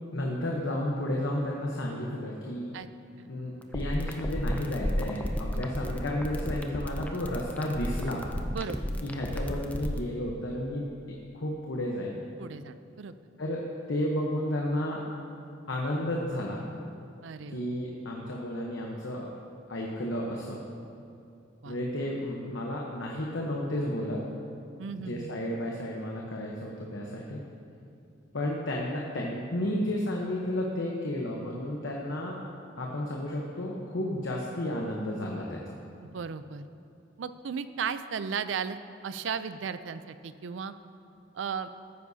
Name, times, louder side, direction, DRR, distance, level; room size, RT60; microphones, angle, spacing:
voice 1, 0.1-2.7 3.3-8.2 9.0-10.9 11.3-12.2 13.4-15.0 15.7-16.7 17.5-19.3 19.7-20.6 21.6-24.3 25.1-27.4 28.3-32.4 32.8-35.8, left 1 dB, 75° left, -2 dB, 1.0 m, -32 dB
sound 1, 3.6-10.0, equal, 10° left, 0.4 m, -32 dB
voice 2, 12.4-13.1 17.2-17.6 21.6-21.8 24.8-25.4 36.0-36.6 37.2-38.8 39.0-40.7 41.3-41.7, right 6 dB, 75° right, 12 dB, 0.4 m, -35 dB
14.0 x 9.6 x 2.8 m, 2.6 s
head